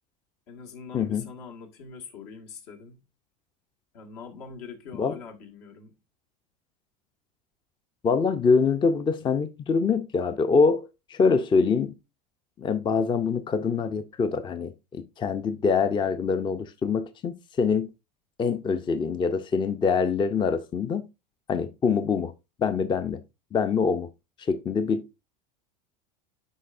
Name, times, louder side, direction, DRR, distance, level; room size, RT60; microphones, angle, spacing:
voice 1, 0.5-3.0 3.9-5.9, left 5 dB, 70° left, 1.8 m, -43 dB
voice 2, 8.0-11.9 12.6-17.9 18.4-21.0 21.5-22.3 22.6-23.2 23.5-24.1 24.5-25.1, left 5 dB, 20° left, 0.5 m, -24 dB
10.0 x 4.7 x 2.5 m
hypercardioid pair, 95°, 21 cm